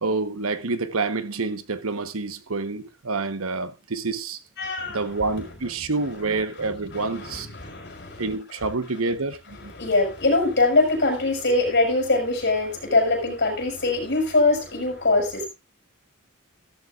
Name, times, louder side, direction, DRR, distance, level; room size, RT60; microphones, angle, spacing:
voice 1, 0.0-4.4 4.9-7.5 8.2-9.7, right 3 dB, 90° right, 1.2 m, -28 dB
voice 2, 4.6-5.0 6.6-8.3 9.7-15.5, left 2 dB, 55° left, 6.0 m, -23 dB
15.5 x 13.5 x 2.5 m
head